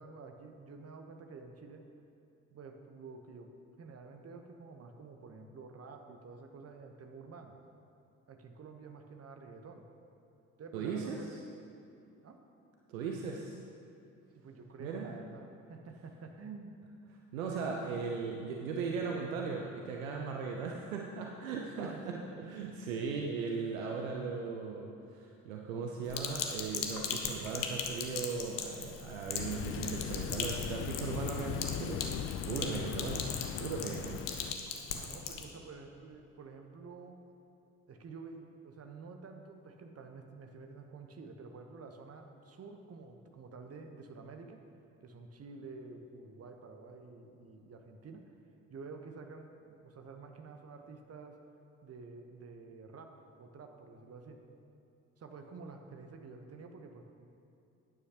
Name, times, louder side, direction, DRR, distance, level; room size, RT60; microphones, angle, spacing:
voice 1, 0.0-1.8 2.5-3.5 3.8-7.6 8.3-9.9 10.6-11.4 12.2-12.4 14.3-16.8 17.5-18.0 18.5-18.7 21.7-22.4 23.8-23.9 34.9-37.2 37.9-44.6 45.0-48.3 48.7-51.4 51.8-54.4 55.2-57.4, right 4 dB, 35° right, 5 dB, 1.1 m, -49 dB
voice 2, 10.7-11.4 12.9-13.6 14.8-15.1 17.3-33.3 33.6-34.2, right 5 dB, 80° right, 1 dB, 0.7 m, -38 dB
Sink (filling or washing), 26.1-35.4, left 6 dB, 55° left, 1.1 m, -39 dB
sound 1, 29.3-34.5, left 9 dB, 35° left, 0.4 m, -39 dB
12.0 x 9.6 x 2.9 m, 2.7 s
figure-of-eight pair, 45°, 40 cm